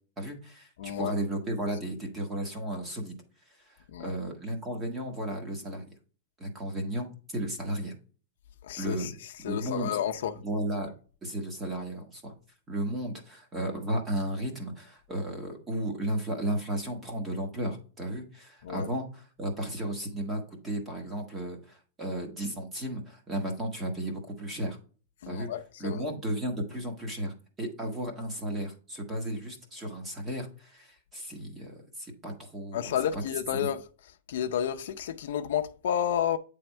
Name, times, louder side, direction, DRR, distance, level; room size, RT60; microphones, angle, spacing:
voice 1, 0.2-3.2 3.6-5.9 6.4-7.9 8.8-9.1 9.4-10.0 10.4-10.9 11.2-12.3 12.7-24.8 25.3-25.5 25.8-33.2, right 1 dB, 10° right, 1.2 m, -34 dB
voice 2, 0.8-1.1 3.9-4.1 8.6-9.1 9.4-10.3 18.6-18.9 25.2-26.0 32.7-33.8 34.3-36.4, left 9 dB, 55° left, 0.6 m, -31 dB
9.0 x 3.4 x 4.4 m
supercardioid pair, 180°, 0 cm